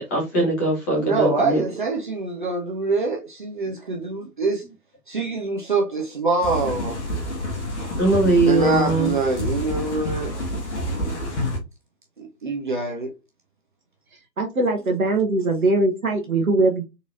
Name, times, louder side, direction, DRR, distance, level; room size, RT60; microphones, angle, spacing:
voice 1, 0.0-1.6 8.0-9.2, right 2 dB, 10° left, 0.8 m, -21 dB
voice 2, 0.9-4.6 5.1-7.0 8.5-10.4 12.2-13.1, right 3 dB, 30° right, 0.6 m, -25 dB
sound 1, 6.4-11.6, left 1 dB, 45° left, 1.3 m, -28 dB
voice 3, 14.4-16.8, right 2 dB, 60° right, 1.0 m, -21 dB
4.0 x 2.9 x 2.4 m
figure-of-eight pair, 135°, 49 cm